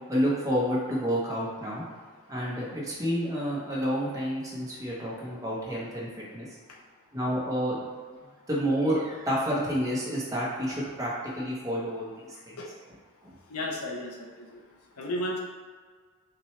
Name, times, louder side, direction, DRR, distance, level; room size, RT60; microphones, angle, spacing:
voice 1, 0.1-1.8 2.3-6.5 7.1-7.8 8.1-8.2 8.5-12.1 12.5-12.6 13.2-13.3, equal, 15° right, -6 dB, 0.9 m, -29 dB
voice 2, 13.5-14.6 15.0-15.4, left 1 dB, 75° left, -1 dB, 0.7 m, -33 dB
6.0 x 2.2 x 3.1 m, 1.5 s
head